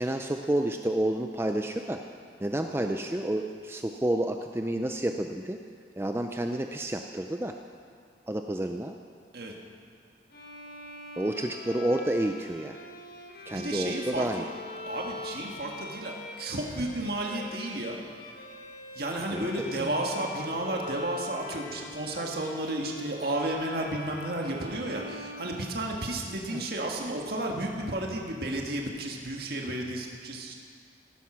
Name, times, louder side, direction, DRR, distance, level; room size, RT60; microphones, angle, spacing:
voice 1, 0.0-2.0 2.4-5.6 6.0-7.5 8.3-8.9 11.2-12.8 13.5-14.4 19.3-19.9 26.3-26.6, right 1 dB, 15° right, 4 dB, 0.4 m, -30 dB
Bowed string instrument, 10.3-26.2, left 1 dB, 50° left, 1.5 m, -43 dB
voice 2, 13.5-14.5 14.9-18.0 18.9-30.5, right 1 dB, 55° right, 0 dB, 1.7 m, -32 dB
17.0 x 10.5 x 6.2 m, 2.1 s
head